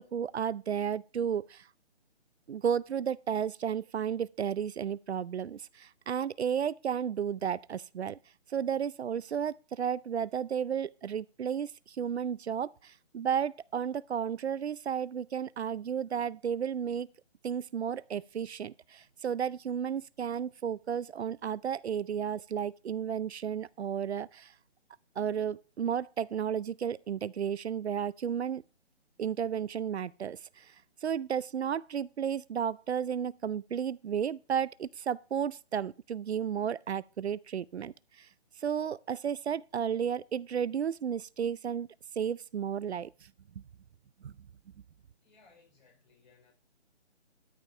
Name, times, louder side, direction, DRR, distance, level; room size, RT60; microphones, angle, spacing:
voice 1, 0.0-1.7 2.5-8.2 8.5-17.1 17.4-24.5 25.2-28.6 29.2-30.7 31.0-38.3 38.6-41.9 42.2-43.1 44.2-44.3, right 8 dB, 70° right, 0.5 m, -33 dB
voice 2, 45.2-46.5, left 4 dB, 40° left, 5.0 m, -63 dB
13.0 x 5.1 x 5.8 m
figure-of-eight pair, 155°, 34 cm